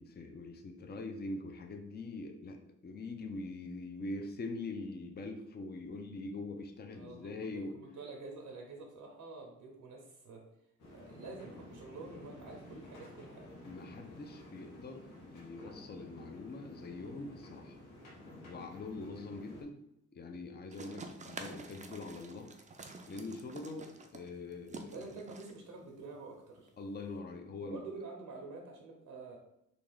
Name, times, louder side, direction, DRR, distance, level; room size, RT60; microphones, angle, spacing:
voice 1, 0.0-7.8 13.7-17.8 18.5-19.8 20.1-22.5 23.1-25.1 26.8-27.8, left 2 dB, 35° left, 4 dB, 0.5 m, -43 dB
voice 2, 6.9-10.4 10.9-13.5 24.9-26.7 27.6-29.4, right 3 dB, 80° right, 1 dB, 0.8 m, -48 dB
sound 1, 10.8-19.6, left 1 dB, 80° left, 1.2 m, -52 dB
sound 2, 20.7-27.2, right 3 dB, 25° right, 0.4 m, -49 dB
3.3 x 2.3 x 3.9 m, 0.81 s
cardioid pair, 90°, 31 cm